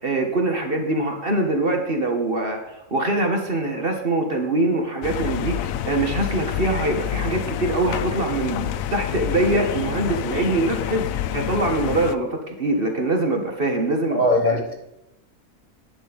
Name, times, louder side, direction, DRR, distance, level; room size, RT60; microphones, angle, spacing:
voice 1, 0.0-14.2, right 2 dB, 40° right, 3 dB, 1.5 m, -23 dB
sound 1, 5.0-12.2, left 11 dB, 75° left, 1.0 m, -28 dB
voice 2, 14.1-14.7, left 1 dB, 35° left, 1 dB, 1.7 m, -20 dB
10.5 x 9.0 x 5.2 m, 0.88 s
omnidirectional pair, 1.5 m